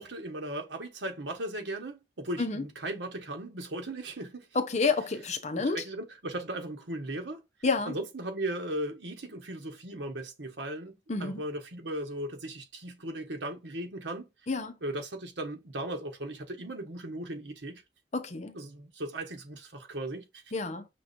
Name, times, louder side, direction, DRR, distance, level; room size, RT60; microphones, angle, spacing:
voice 1, 0.0-4.5 5.5-7.4 7.9-14.3 14.8-17.8 18.5-20.4, right 1 dB, 85° right, 1.3 m, -37 dB
voice 2, 4.5-5.8 7.6-7.9 11.1-11.4 14.5-14.8 18.1-18.6 20.5-20.9, left 4 dB, 40° left, 0.7 m, -29 dB
6.0 x 3.0 x 2.6 m
head